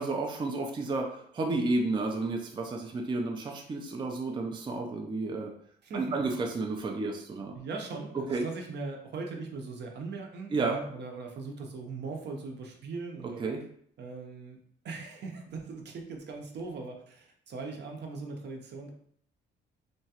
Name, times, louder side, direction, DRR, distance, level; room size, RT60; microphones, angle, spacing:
voice 1, 0.0-5.5 5.9-7.6 8.3-8.4 10.5-10.8 13.4-13.6, right 3 dB, 25° right, 2 dB, 0.4 m, -31 dB
voice 2, 5.8-6.4 7.5-13.4 14.0-14.6 14.8-18.9, right 4 dB, 60° right, 2 dB, 0.6 m, -40 dB
2.9 x 2.3 x 2.8 m, 0.65 s
cardioid pair, 90°, 20 cm